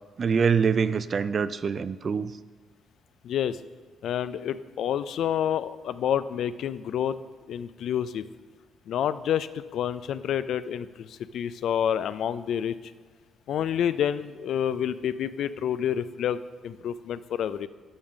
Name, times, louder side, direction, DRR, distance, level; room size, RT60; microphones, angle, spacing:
voice 1, 0.2-2.3, right 6 dB, 45° right, 15 dB, 0.3 m, -24 dB
voice 2, 3.2-3.6 4.0-7.2 7.5-8.2 8.9-12.7 13.5-17.7, left 9 dB, 70° left, 14 dB, 0.3 m, -28 dB
7.0 x 5.5 x 6.3 m, 1.4 s
cardioid pair, 90°, 0 cm